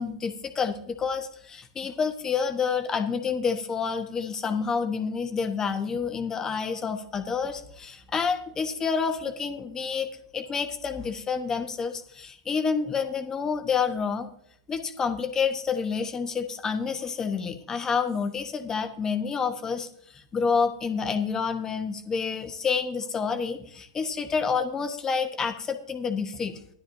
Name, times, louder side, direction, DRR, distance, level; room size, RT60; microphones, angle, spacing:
voice 1, 0.0-14.3 14.7-26.6, left 5 dB, 20° left, 7 dB, 1.1 m, -28 dB
15.5 x 12.0 x 2.7 m, 0.69 s
hypercardioid pair, 100°, 3 cm